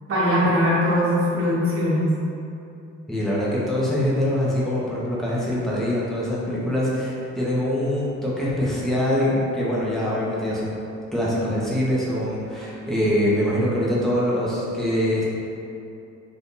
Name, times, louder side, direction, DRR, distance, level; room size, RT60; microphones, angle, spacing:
voice 1, 0.1-2.1, equal, 45° right, -8 dB, 1.1 m, -20 dB
voice 2, 3.1-10.8 11.1-15.2, equal, ahead, -8 dB, 0.9 m, -24 dB
2.7 x 2.6 x 3.7 m, 2.7 s
cardioid pair, 90°, 30 cm